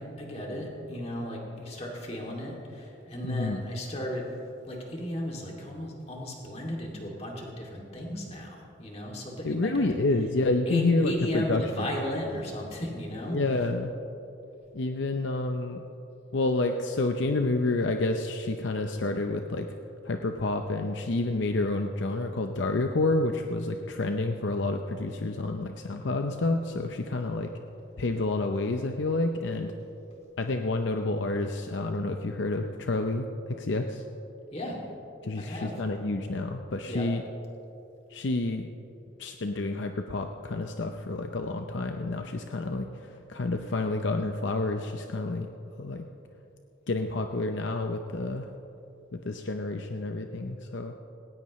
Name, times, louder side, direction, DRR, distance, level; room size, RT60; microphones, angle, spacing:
voice 1, 0.0-4.3 4.7-9.9 10.7-13.4 34.5-34.8 35.3-35.7 36.8-37.1, equal, 30° left, -1 dB, 2.5 m, -35 dB
voice 2, 3.2-3.6 9.4-11.9 13.3-13.9 14.7-15.8 16.3-19.7 20.0-27.5 28.0-29.7 30.4-33.3 33.6-34.0 35.2-37.2 38.1-38.7 39.2-45.5 45.8-46.0 46.9-48.5 49.1-51.0, left 2 dB, 65° left, 5 dB, 0.7 m, -29 dB
19.0 x 18.0 x 3.1 m, 2.9 s
head